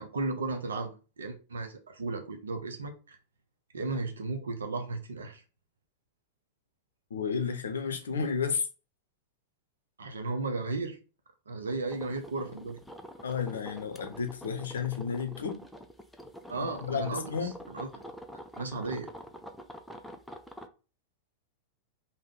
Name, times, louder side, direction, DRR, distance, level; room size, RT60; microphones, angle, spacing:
voice 1, 0.0-3.2 3.7-5.4 10.0-11.0 11.5-12.8 16.5-18.0 18.5-19.1, right 3 dB, 70° right, 0.6 m, -35 dB
voice 2, 7.1-8.7 13.2-15.6 16.6-17.6, left 6 dB, 65° left, 0.6 m, -32 dB
sound 1, 11.9-20.7, equal, ahead, 0.4 m, -46 dB
3.5 x 2.1 x 3.7 m
figure-of-eight pair, 90°, 0 cm